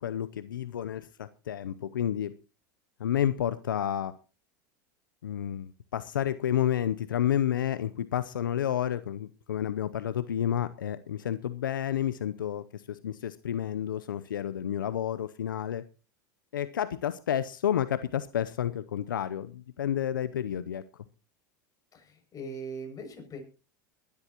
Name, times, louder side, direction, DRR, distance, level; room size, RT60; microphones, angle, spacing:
voice 1, 0.0-2.3 3.0-4.1 5.2-15.8 16.5-20.8, left 10 dB, 90° left, 15 dB, 0.7 m, -30 dB
voice 2, 21.9-23.4, right 2 dB, 35° left, 4 dB, 7.0 m, -40 dB
21.5 x 12.0 x 3.0 m, 0.33 s
hypercardioid pair, 95°, 11 cm